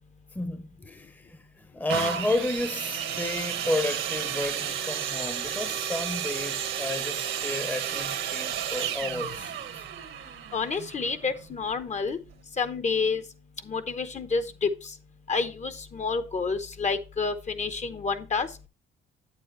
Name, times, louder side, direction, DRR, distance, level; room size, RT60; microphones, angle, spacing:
voice 1, 0.3-9.5, left 2 dB, 10° left, 0.8 m, -32 dB
sound 1, 1.9-11.6 12.3-12.4, right 9 dB, 75° right, 1.4 m, -32 dB
voice 2, 10.5-12.2 12.6-13.2 13.7-14.7 15.3-18.5, left 4 dB, 35° left, 0.9 m, -29 dB
8.4 x 7.7 x 3.1 m
cardioid pair, 90°, 20 cm